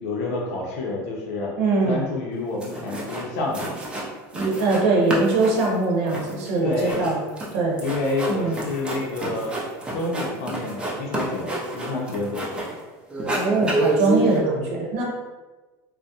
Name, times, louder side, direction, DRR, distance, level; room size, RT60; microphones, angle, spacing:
voice 1, 0.0-1.5 1.8-3.8 6.6-7.1 7.8-9.6 9.8-11.5 11.7-12.6, left 2 dB, 85° left, -2 dB, 0.5 m, -28 dB
voice 2, 1.6-2.0 4.3-7.2 7.5-7.8 8.3-8.5 13.3-15.0, right 3 dB, 75° right, -2 dB, 0.8 m, -22 dB
sound 1, 2.3-2.4 2.6-3.3 3.5-4.8 5.1-12.8 13.1-14.4, right 1 dB, 15° right, 0.4 m, -29 dB
2.3 x 2.0 x 2.7 m, 1.2 s
supercardioid pair, 145°, 8 cm